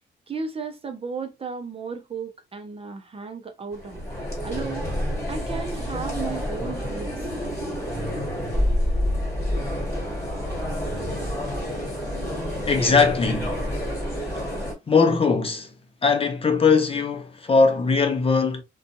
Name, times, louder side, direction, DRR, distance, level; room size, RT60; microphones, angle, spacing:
voice 1, 0.3-4.1 4.4-4.8 5.3-7.3, right 5 dB, 30° right, 0.6 m, -34 dB
sound 1, 3.7-14.7, equal, 15° left, 1.5 m, -28 dB
voice 2, 12.7-13.6 14.9-15.7 16.0-18.6, left 4 dB, 30° left, 0.6 m, -20 dB
2.6 x 2.3 x 2.5 m
cardioid pair, 90°, 20 cm